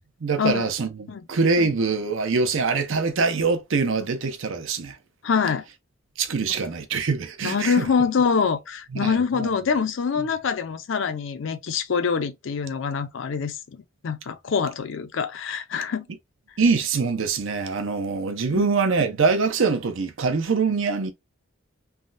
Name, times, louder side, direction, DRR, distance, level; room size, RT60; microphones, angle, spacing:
voice 1, 0.2-5.0 6.2-7.9 8.9-9.5 16.6-21.1, right 4 dB, 80° right, 0.6 m, -24 dB
voice 2, 5.2-5.6 7.4-13.6 14.0-16.1 18.5-18.7, left 6 dB, 70° left, 0.5 m, -25 dB
3.5 x 2.2 x 2.5 m
head